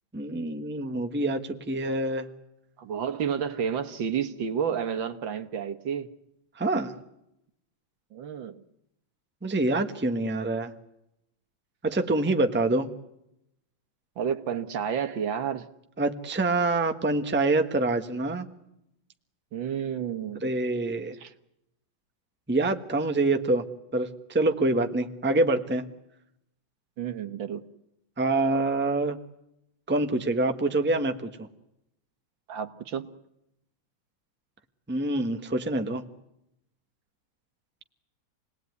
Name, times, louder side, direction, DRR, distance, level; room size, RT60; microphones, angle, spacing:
voice 1, 0.1-2.3 6.6-6.9 9.4-10.7 11.8-12.9 16.0-18.5 20.4-21.1 22.5-23.6 23.9-25.9 28.2-29.2 29.9-31.5 34.9-36.0, right 2 dB, 5° right, 1.1 m, -26 dB
voice 2, 2.8-6.1 8.1-8.6 14.2-15.7 19.5-20.5 21.2-21.3 27.0-27.6 32.5-33.1, right 8 dB, 70° right, 2.0 m, -30 dB
28.0 x 19.5 x 9.5 m
omnidirectional pair, 2.2 m